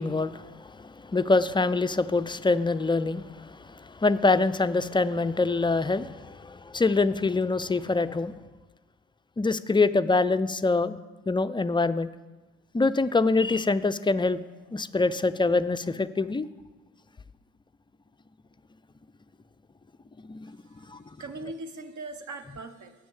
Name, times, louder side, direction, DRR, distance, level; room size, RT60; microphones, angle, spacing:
voice 1, 0.0-8.4 9.4-11.0 11.3-12.1 12.7-14.4 14.7-16.5 20.3-20.5 20.9-21.0, left 3 dB, 15° left, 12 dB, 0.4 m, -25 dB
voice 2, 20.6-22.9, right 3 dB, 50° right, 9 dB, 1.1 m, -40 dB
8.2 x 6.2 x 7.2 m, 1.2 s
hypercardioid pair, 50°, 37 cm